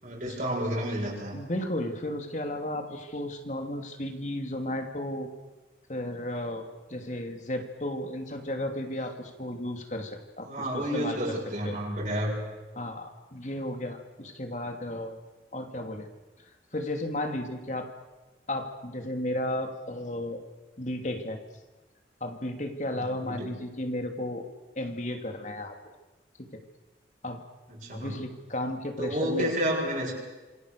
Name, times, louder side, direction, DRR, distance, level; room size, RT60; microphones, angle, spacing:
voice 1, 0.0-1.3 10.4-12.3 22.9-23.5 27.7-28.2 29.0-30.1, equal, 45° right, -3 dB, 7.1 m, -30 dB
voice 2, 1.3-5.3 5.9-6.6 6.9-10.5 10.7-11.2 11.6-11.8 12.7-15.2 15.5-16.1 16.7-17.9 18.5-20.4 20.8-21.4 22.2-24.4 24.7-25.7 26.5-26.6 27.2-27.4 27.9-29.5, left 1 dB, 40° left, 5 dB, 2.9 m, -34 dB
27.5 x 23.5 x 6.9 m, 1.2 s
head